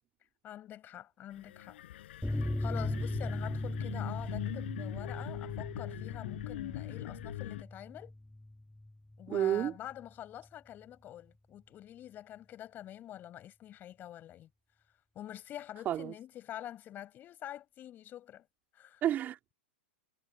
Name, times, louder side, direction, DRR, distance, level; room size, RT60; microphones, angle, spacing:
voice 1, 0.4-1.8 2.3-8.1 9.2-14.5 15.2-18.5 18.7-19.0, left 12 dB, 30° left, 5.4 m, -46 dB
sound 1, 1.3-7.6, left 13 dB, 65° left, 7.6 m, -42 dB
sound 2, 2.2-9.3 9.6-9.7 10.0-10.1, left 1 dB, 5° left, 1.5 m, -38 dB
voice 2, 9.3-9.7 15.8-16.1 19.0-19.5, right 11 dB, 30° right, 3.1 m, -30 dB
hypercardioid pair, 115°, 6 cm